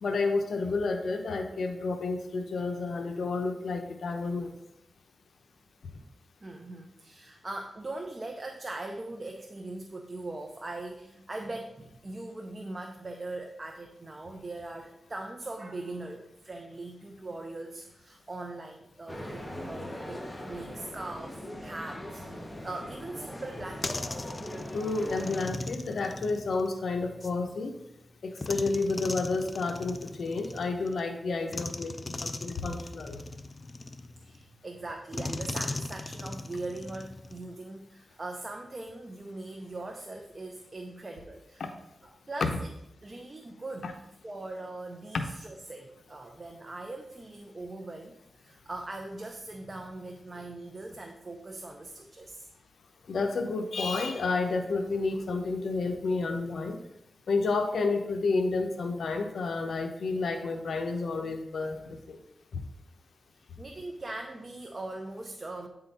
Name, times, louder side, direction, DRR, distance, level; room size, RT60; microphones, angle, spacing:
voice 1, 0.0-4.5 24.7-27.7 28.2-31.9 32.2-33.2 43.8-43.9 45.1-45.2 53.1-56.8 57.3-62.2, left 3 dB, 80° left, 5 dB, 0.7 m, -30 dB
voice 2, 6.4-24.3 34.2-41.6 42.0-42.7 43.0-43.9 44.2-48.1 48.4-52.5 63.3-65.7, right 2 dB, 35° right, 3 dB, 0.7 m, -41 dB
sound 1, 19.1-25.5, left 1 dB, 15° left, 1.0 m, -41 dB
sound 2, 23.5-27.4 28.4-31.0 31.5-34.4 35.1-37.5, left 2 dB, 35° left, 0.4 m, -39 dB
8.7 x 3.8 x 4.1 m, 0.83 s
cardioid pair, 80°, 0 cm